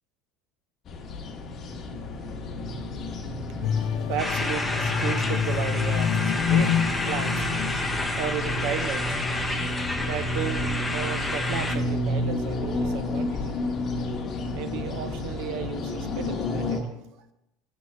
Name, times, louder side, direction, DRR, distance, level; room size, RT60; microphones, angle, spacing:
sound 1, 0.8-16.8, left 1 dB, 35° left, 1.1 m, -31 dB
voice 1, 3.5-13.8 14.5-17.0, right 8 dB, 65° right, 0.5 m, -35 dB
sound 2, 3.6-8.9 9.4-9.6, left 8 dB, 60° left, 0.6 m, -27 dB
sound 3, 4.2-11.8, left 2 dB, 5° left, 0.6 m, -30 dB
7.7 x 6.9 x 3.2 m
cardioid pair, 155°, 0 cm